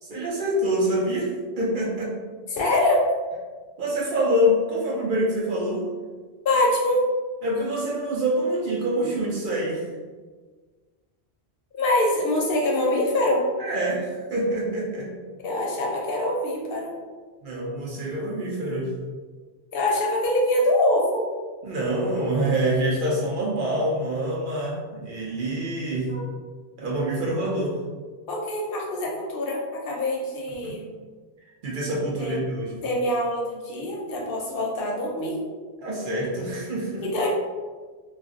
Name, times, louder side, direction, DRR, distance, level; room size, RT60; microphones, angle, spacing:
voice 1, 0.0-2.1 3.8-5.9 7.4-9.9 13.6-15.1 17.4-18.9 21.6-26.1 26.8-27.8 30.6-30.7 31.6-32.8 35.8-37.1, right 1 dB, 55° right, -4 dB, 0.7 m, -26 dB
voice 2, 2.5-3.0 6.4-7.0 11.7-13.4 15.4-16.9 19.7-21.2 26.1-26.3 28.3-30.8 32.2-32.3 32.8-35.4 37.1-37.3, left 1 dB, 65° left, -2 dB, 0.7 m, -24 dB
2.4 x 2.0 x 3.6 m, 1.4 s
omnidirectional pair, 1.1 m